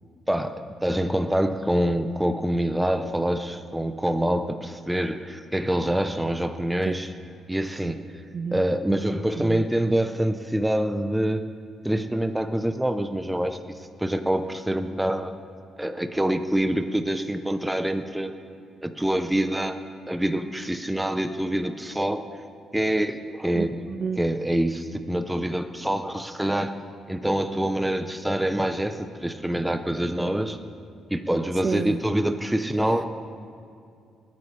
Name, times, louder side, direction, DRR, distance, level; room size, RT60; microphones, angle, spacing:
voice 1, 0.3-7.1 7.5-8.0 8.5-11.5 11.8-15.3 15.8-18.3 18.8-19.8 20.1-22.2 22.7-23.9 24.2-26.7 27.1-30.6 31.1-33.1, right 1 dB, 5° right, 7 dB, 0.7 m, -26 dB
voice 2, 8.3-8.6 9.4-9.6 23.5-24.2 31.6-32.0, right 5 dB, 45° right, 12 dB, 0.4 m, -30 dB
28.5 x 9.6 x 3.4 m, 2.4 s
cardioid pair, 90°, 0 cm